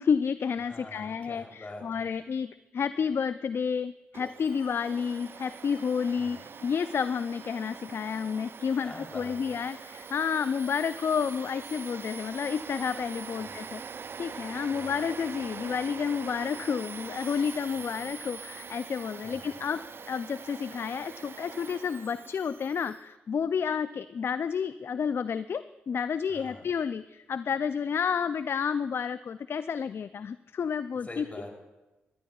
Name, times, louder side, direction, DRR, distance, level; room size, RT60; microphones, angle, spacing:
voice 1, 0.0-13.8 14.2-31.3, left 6 dB, 50° left, 14 dB, 0.3 m, -30 dB
voice 2, 0.6-2.2 6.1-6.5 8.8-9.6 13.4-13.5 14.7-14.9 17.7-18.1 19.2-19.5 26.3-26.6 31.0-31.5, left 2 dB, 30° left, 1 dB, 3.3 m, -45 dB
Domestic sounds home sounds, 4.1-23.0, right 5 dB, 50° right, 0.4 m, -43 dB
19.0 x 13.0 x 2.4 m, 1.1 s
supercardioid pair, 45°, 5 cm